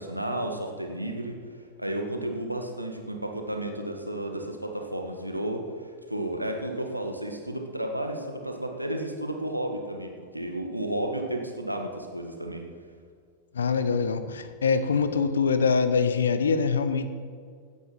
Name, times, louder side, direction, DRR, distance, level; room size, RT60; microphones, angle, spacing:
voice 1, 0.0-1.4 1.8-5.6 6.1-12.6, right 1 dB, 90° right, 3 dB, 1.6 m, -32 dB
voice 2, 13.5-17.1, left 5 dB, 70° left, 11 dB, 0.8 m, -24 dB
15.5 x 9.6 x 5.5 m, 2.1 s
figure-of-eight pair, 90°, 0 cm